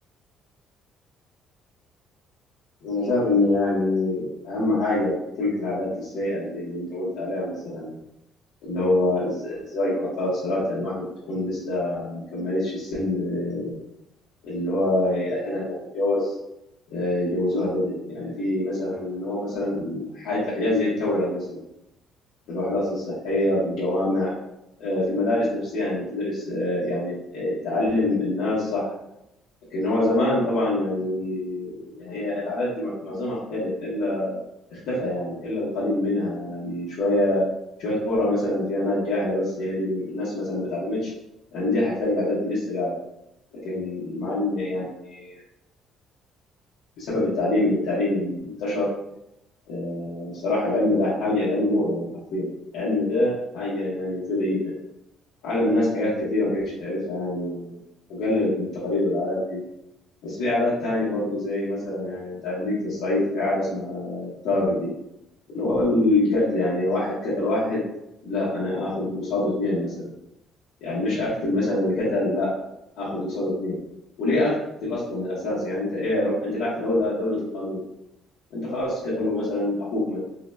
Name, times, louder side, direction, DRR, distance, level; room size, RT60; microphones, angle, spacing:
voice 1, 2.8-7.9 8.6-13.7 14.4-16.3 16.9-21.6 22.5-24.3 24.8-28.8 29.7-34.3 34.7-37.4 37.8-41.1 41.5-43.0 43.6-45.3 47.0-48.9 49.7-54.7 55.4-57.8 58.1-59.6 60.2-64.9 65.5-67.8 68.2-70.1 70.8-72.5 73.0-73.8 74.2-74.5 74.8-77.8 78.5-80.2, left 1 dB, 85° left, -10 dB, 0.9 m, -25 dB
3.8 x 2.0 x 2.2 m, 0.86 s
cardioid pair, 180°, 0 cm